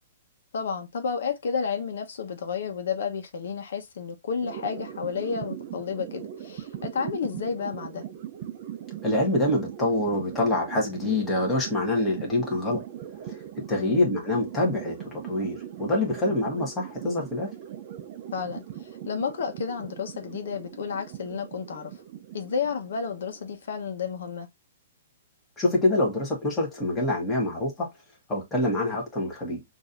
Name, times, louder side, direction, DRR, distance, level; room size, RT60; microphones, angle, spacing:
voice 1, 0.5-8.0 13.7-14.1 18.3-21.9 22.3-24.5, left 6 dB, 65° left, 1.0 m, -31 dB
sound 1, 4.4-23.9, right 10 dB, 35° right, 0.6 m, -40 dB
voice 2, 9.0-12.8 13.3-13.4 13.7-17.5 25.6-27.9 28.3-29.6, left 2 dB, 10° left, 1.5 m, -26 dB
6.1 x 2.7 x 2.6 m
hypercardioid pair, 165°, 0 cm